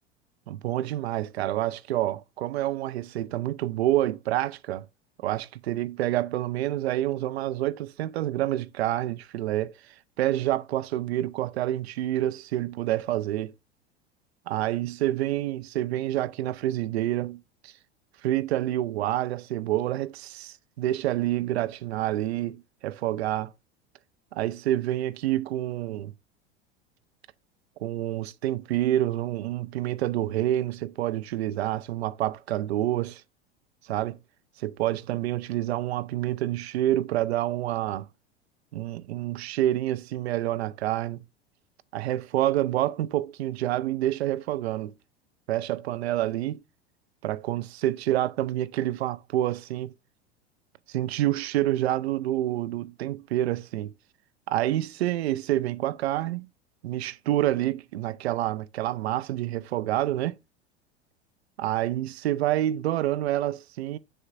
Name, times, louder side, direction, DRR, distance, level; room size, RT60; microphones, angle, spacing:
voice 1, 0.5-4.9 5.2-9.7 10.2-13.5 14.5-17.7 18.2-23.5 24.3-26.1 27.8-33.2 33.8-34.2 34.6-38.1 38.7-41.2 41.9-44.9 45.5-46.6 47.2-49.9 50.9-53.9 54.5-56.5 56.8-60.4 61.6-64.0, right 14 dB, 70° right, 0.6 m, -28 dB
7.1 x 6.7 x 2.5 m
hypercardioid pair, 85°, 33 cm